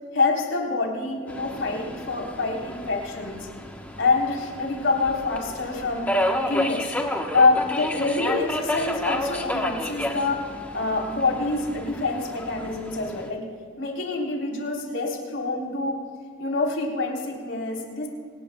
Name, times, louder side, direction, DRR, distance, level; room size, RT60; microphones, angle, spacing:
voice 1, 0.1-3.5 4.0-6.1 6.4-6.9 7.3-10.4 10.7-13.4 13.8-16.0 16.4-18.1, left 3 dB, 70° left, -1 dB, 3.5 m, -26 dB
Subway metro underground, 1.3-13.3, left 1 dB, 10° left, 1.0 m, -31 dB
24.5 x 19.5 x 2.2 m, 2.2 s
head